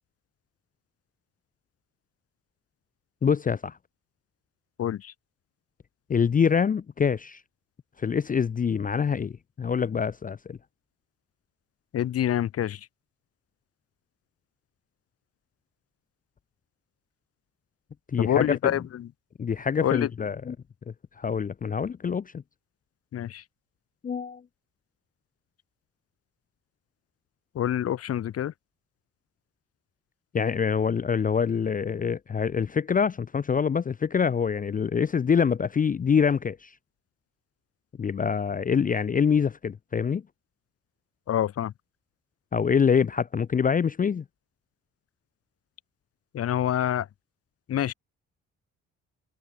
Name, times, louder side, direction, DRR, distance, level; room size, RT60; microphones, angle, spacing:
voice 1, 3.2-3.8 6.1-7.4 8.0-10.6 18.1-18.7 19.4-20.6 21.2-22.4 24.0-24.4 30.3-36.7 38.0-40.2 42.5-44.2, left 6 dB, 30° left, 0.5 m, -25 dB
voice 2, 4.8-5.1 11.9-12.9 18.2-19.1 19.8-20.1 23.1-23.4 27.5-28.5 41.3-41.7 46.3-47.1 47.7-47.9, left 11 dB, 50° left, 0.8 m, -26 dB
cardioid pair, 90°, 30 cm